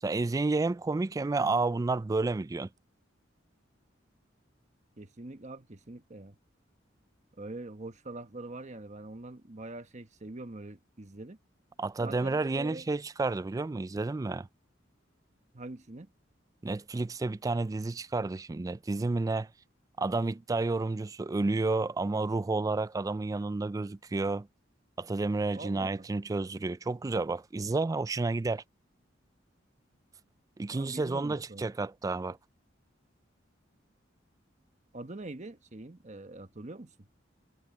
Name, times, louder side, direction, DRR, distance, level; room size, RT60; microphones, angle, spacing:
voice 1, 0.0-2.7 11.8-14.5 16.6-19.5 20.0-24.5 25.0-28.6 30.6-32.4, right 3 dB, 20° right, 0.3 m, -30 dB
voice 2, 5.0-6.4 7.4-11.4 12.0-12.9 15.5-16.1 25.5-26.1 30.7-31.7 34.9-36.9, right 2 dB, 40° right, 1.2 m, -44 dB
head